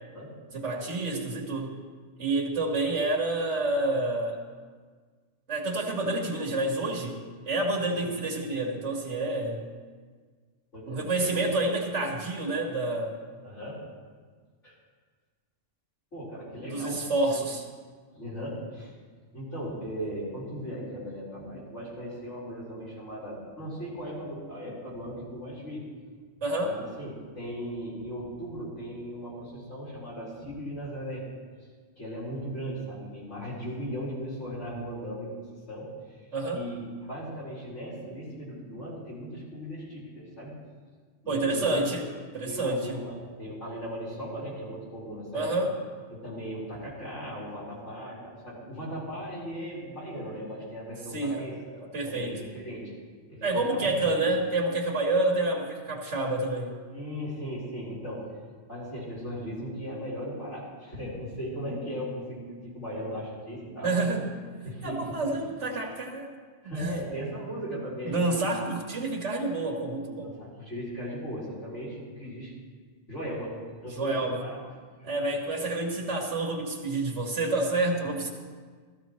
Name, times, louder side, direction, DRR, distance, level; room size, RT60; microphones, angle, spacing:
voice 1, 0.5-1.7 2.2-4.4 5.5-9.7 10.9-13.2 16.6-17.6 26.4-26.7 36.3-36.7 41.3-42.1 42.3-43.0 45.3-45.7 51.1-52.4 53.4-56.8 63.8-64.3 64.8-66.3 66.8-66.9 68.1-70.4 73.8-74.4 75.0-78.3, right 2 dB, 75° right, 0 dB, 1.9 m, -28 dB
voice 2, 10.7-11.3 13.4-13.8 14.6-14.7 16.1-17.0 17.3-17.4 18.1-18.9 19.3-25.9 26.6-31.3 32.0-36.3 36.5-40.5 41.2-41.9 42.4-45.6 46.1-51.6 52.0-52.9 53.3-54.3 56.9-58.4 58.7-64.1 64.6-65.4 66.6-68.2 70.2-72.5 73.1-73.6 73.8-74.6 75.0-75.3, equal, 90° left, -7 dB, 4.9 m, -37 dB
16.0 x 13.5 x 3.1 m, 1.5 s
omnidirectional pair, 1.2 m